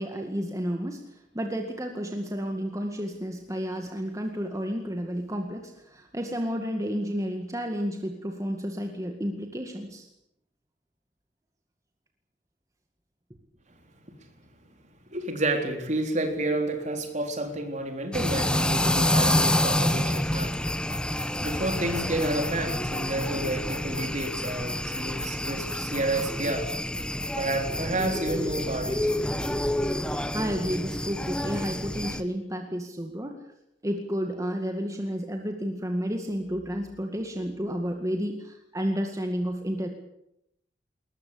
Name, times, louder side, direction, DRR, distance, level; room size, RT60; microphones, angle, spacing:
voice 1, 0.0-10.1 30.3-33.4 33.8-39.9, equal, 20° right, 2.1 m, -31 dB
voice 2, 15.1-26.7 27.4-29.2 31.5-31.6, right 1 dB, 40° right, 3.9 m, -30 dB
Kingdoms of the Night (The Swamp), 18.1-32.2, left 1 dB, 5° left, 1.1 m, -28 dB
21.0 x 20.5 x 8.6 m
head